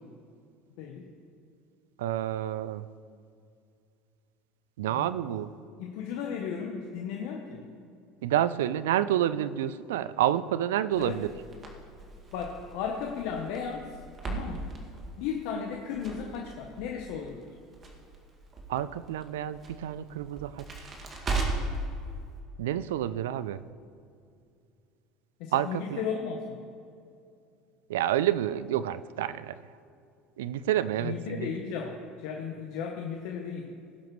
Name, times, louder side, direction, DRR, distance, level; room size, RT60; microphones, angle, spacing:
voice 1, 2.0-2.9 4.8-5.5 8.2-11.3 18.7-20.7 22.6-23.6 25.5-26.0 27.9-29.6 30.4-31.5, right 12 dB, 80° right, 16 dB, 0.3 m, -29 dB
voice 2, 4.9-5.4 5.8-7.7 11.0-11.2 12.3-14.0 14.2-14.7 15.2-17.4 25.4-26.6 31.0-33.8, left 6 dB, 70° left, 2 dB, 0.9 m, -35 dB
Crackle, 10.9-21.8, right 3 dB, 35° right, 2.0 m, -38 dB
18.5 x 7.7 x 3.1 m, 2.5 s
hypercardioid pair, 85°, 0 cm